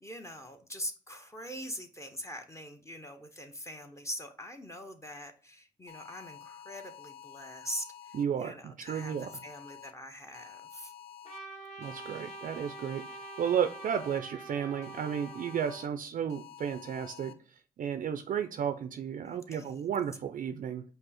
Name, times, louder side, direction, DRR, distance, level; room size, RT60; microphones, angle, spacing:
voice 1, 0.0-10.9 19.2-19.9, equal, 15° left, 5 dB, 0.8 m, -43 dB
sound 1, 5.9-8.2 8.9-9.9 10.3-11.4 11.8-14.2 14.8-15.9 16.3-17.3, left 9 dB, 75° left, 0.4 m, -50 dB
voice 2, 8.1-9.3 11.8-20.8, right 8 dB, 55° right, 9 dB, 0.4 m, -33 dB
Trumpet, 11.2-15.9, right 3 dB, 40° left, 2.0 m, -46 dB
5.2 x 2.0 x 4.2 m, 0.41 s
supercardioid pair, 55°, 17 cm